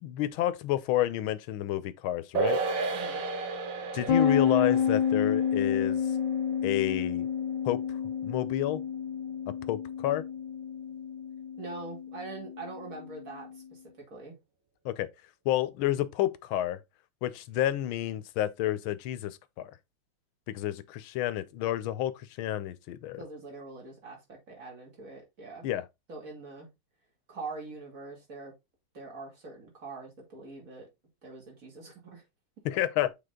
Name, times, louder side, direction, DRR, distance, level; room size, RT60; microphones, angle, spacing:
voice 1, 0.0-2.6 3.9-6.0 6.6-7.3 7.6-7.8 8.2-8.8 9.7-10.2 14.8-15.1 15.5-16.8 17.2-19.7 20.5-22.1 22.4-23.2 25.6-25.8 32.6-33.1, left 13 dB, 80° left, 1.5 m, -30 dB
sound 1, 2.3-9.0 9.3-9.4, right 4 dB, 65° right, 1.7 m, -35 dB
sound 2, 4.1-13.5, left 8 dB, 65° left, 1.3 m, -30 dB
voice 2, 11.6-14.4 23.1-25.7 26.1-26.7 27.3-28.5 28.9-30.9 31.2-32.2, right 3 dB, 40° right, 2.8 m, -43 dB
6.8 x 4.0 x 3.7 m
omnidirectional pair, 2.3 m